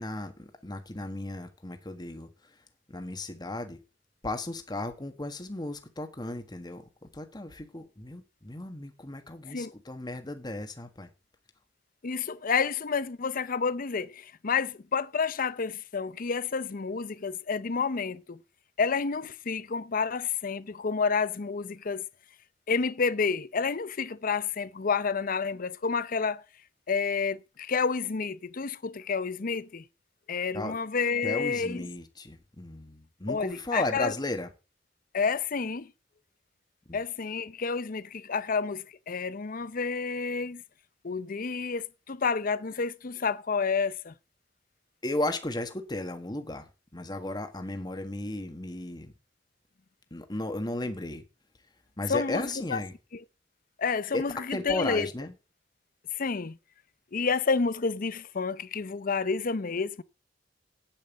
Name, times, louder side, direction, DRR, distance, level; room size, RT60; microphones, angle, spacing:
voice 1, 0.0-2.6 2.9-3.8 4.2-11.1 30.5-30.8 31.2-34.5 36.9-37.0 45.0-49.1 50.1-51.2 52.0-52.9 54.1-54.2 54.5-55.3, left 2 dB, 25° left, 1.5 m, -35 dB
voice 2, 12.0-18.4 18.8-22.0 22.7-26.4 26.9-29.9 30.3-31.8 33.3-34.1 35.1-35.9 36.9-40.6 41.0-44.1 52.1-52.8 53.1-53.2 53.8-55.1 56.1-56.6 57.1-60.0, left 5 dB, 50° left, 0.6 m, -29 dB
9.1 x 8.9 x 7.4 m
head